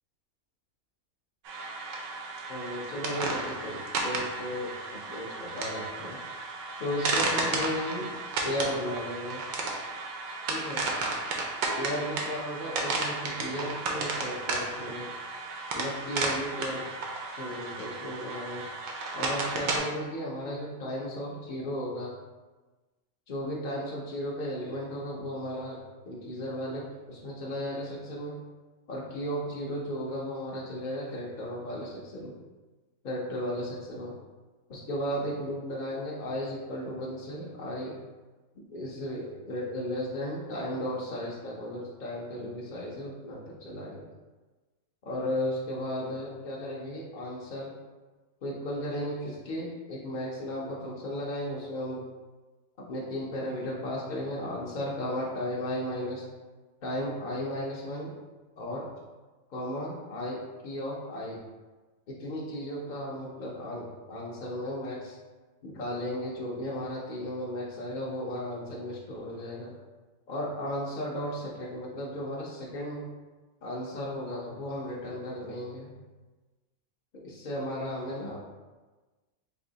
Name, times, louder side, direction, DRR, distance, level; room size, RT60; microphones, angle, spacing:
sound 1, 1.5-19.8, right 3 dB, 85° right, 1.1 m, -33 dB
voice 1, 2.5-6.2 6.8-8.1 8.4-9.4 10.5-10.8 11.8-15.1 15.7-16.8 17.4-18.7 19.1-22.1 23.3-28.4 28.9-32.4 33.0-34.1 34.7-38.0 38.5-44.1 45.0-47.7 48.4-52.0 52.8-56.3 56.8-58.1 58.6-58.9 59.5-61.4 62.1-65.2 65.6-69.7 70.3-73.1 73.6-75.9 77.1-78.4, equal, 55° left, -4 dB, 0.5 m, -35 dB
3.4 x 2.6 x 3.8 m, 1.3 s
omnidirectional pair, 1.5 m